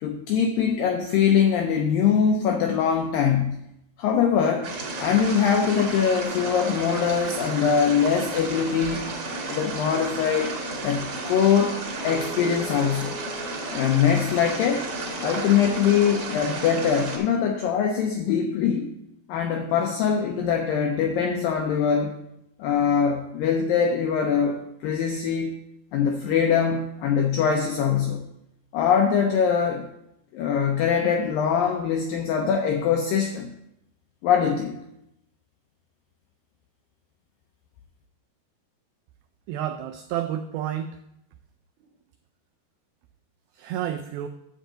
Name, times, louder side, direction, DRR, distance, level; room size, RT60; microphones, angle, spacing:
voice 1, 0.0-3.6 4.0-4.7 5.0-9.1 9.5-10.6 10.8-13.2 13.7-14.9 15.2-18.9 19.3-22.2 22.6-25.6 25.9-28.3 28.7-29.9 30.3-33.5 34.2-34.8, left 7 dB, 85° left, 3 dB, 2.0 m, -23 dB
sound 1, 4.6-17.2, right 3 dB, 45° right, 2.2 m, -33 dB
sound 2, 12.0-13.7 14.7-18.3, left 3 dB, 65° left, 1.0 m, -43 dB
voice 2, 39.5-41.0 43.5-44.3, right 10 dB, 90° right, 6 dB, 2.1 m, -30 dB
10.0 x 7.3 x 3.8 m, 0.80 s
omnidirectional pair, 4.8 m